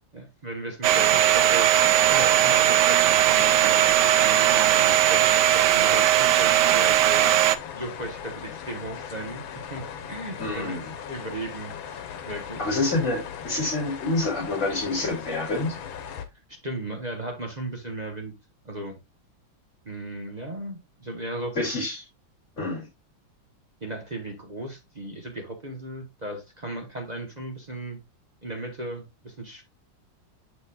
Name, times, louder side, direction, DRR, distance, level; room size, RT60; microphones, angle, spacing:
voice 1, 0.1-7.3 7.7-11.7 12.2-12.6 16.5-18.3 18.6-19.0 19.8-21.6 23.8-28.0 28.4-29.6, right 1 dB, 30° right, 0.9 m, -36 dB
sound 1, 0.8-16.3, left 8 dB, 80° left, 1.6 m, -39 dB
Domestic sounds home sounds, 0.8-7.6, right 12 dB, 75° right, 1.1 m, -19 dB
voice 2, 10.4-10.9 12.6-15.8 21.5-22.0 22.6-22.9, left 2 dB, 35° left, 2.9 m, -27 dB
7.1 x 6.8 x 2.3 m
omnidirectional pair, 2.1 m